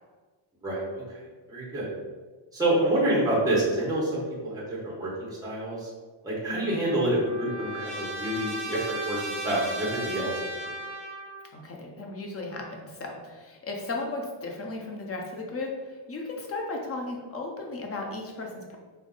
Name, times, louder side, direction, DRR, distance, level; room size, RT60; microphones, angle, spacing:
voice 1, 1.5-1.9 2.5-5.9 6.2-10.7, right 1 dB, 5° right, -6 dB, 1.1 m, -27 dB
voice 2, 6.5-6.9 11.5-18.8, left 2 dB, 30° left, 1 dB, 0.6 m, -35 dB
Trumpet, 6.6-11.5, right 2 dB, 55° right, 1.2 m, -36 dB
5.3 x 2.0 x 3.8 m, 1.4 s
cardioid pair, 140°, 50 cm